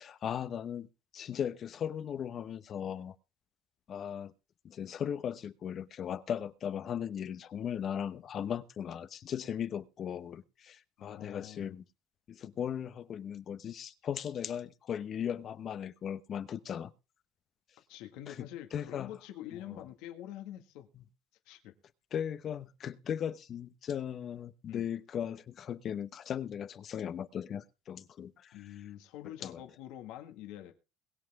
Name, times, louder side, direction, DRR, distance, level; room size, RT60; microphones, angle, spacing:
voice 1, 0.0-3.2 3.9-4.3 4.6-11.8 12.3-16.9 18.3-19.1 19.7-19.8 22.1-28.6 29.4-29.6, left 9 dB, 45° left, 1.0 m, -37 dB
voice 2, 11.0-11.8 17.9-20.9 21.5-21.7 24.7-24.9 28.5-30.7, left 12 dB, 80° left, 1.9 m, -46 dB
22.0 x 7.7 x 3.7 m
cardioid pair, 110°, 0 cm